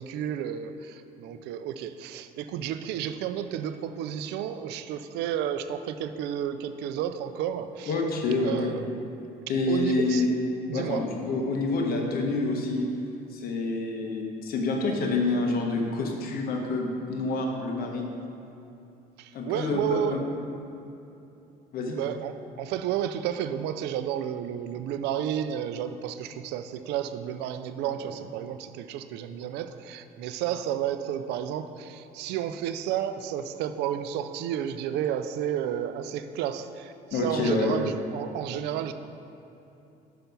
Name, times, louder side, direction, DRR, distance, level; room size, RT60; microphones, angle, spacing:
voice 1, 0.0-8.0 8.4-9.0 9.7-10.2 10.7-11.1 19.2-20.2 21.9-38.9, right 10 dB, 85° right, 10 dB, 0.4 m, -32 dB
voice 2, 7.9-8.7 9.5-10.3 10.7-12.9 13.3-18.1 19.3-20.2 21.7-22.0 37.1-37.8, left 3 dB, 60° left, 1 dB, 1.1 m, -27 dB
5.8 x 5.6 x 5.3 m, 2.8 s
cardioid pair, 110°, 17 cm